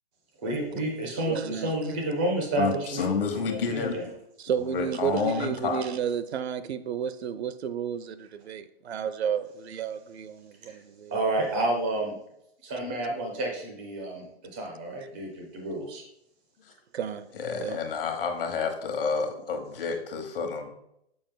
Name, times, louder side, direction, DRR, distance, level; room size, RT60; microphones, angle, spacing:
voice 1, 0.4-4.0 10.7-10.8 11.1-12.2 12.6-14.3 14.5-16.0, right 1 dB, 10° right, 0.3 m, -30 dB
voice 2, 1.2-1.7 4.4-11.1 16.9-17.3 17.6-17.8, right 8 dB, 80° right, 0.6 m, -32 dB
voice 3, 2.6-3.9 4.5-5.8 17.4-20.7, left 5 dB, 60° left, 1.4 m, -29 dB
6.9 x 5.0 x 3.8 m
hypercardioid pair, 170°, 32 cm